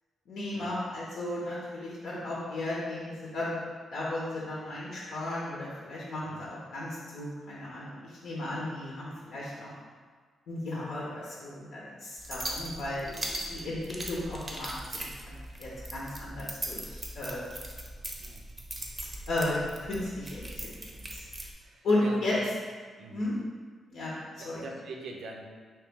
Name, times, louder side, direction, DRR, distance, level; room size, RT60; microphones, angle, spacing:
voice 1, 0.3-3.6 3.9-9.7 10.5-17.4 19.3-20.7 21.1-21.2 21.8-22.3 23.1-23.3 23.9-24.1 24.4-24.6, left 1 dB, 80° left, -6 dB, 0.8 m, -34 dB
sound 1, 12.2-21.5, right 1 dB, 25° right, 0.6 m, -40 dB
voice 2, 21.6-22.5 23.0-23.3 24.4-25.4, right 2 dB, 75° right, 1 dB, 0.5 m, -43 dB
3.1 x 2.9 x 3.5 m, 1.6 s
cardioid pair, 105°, 0 cm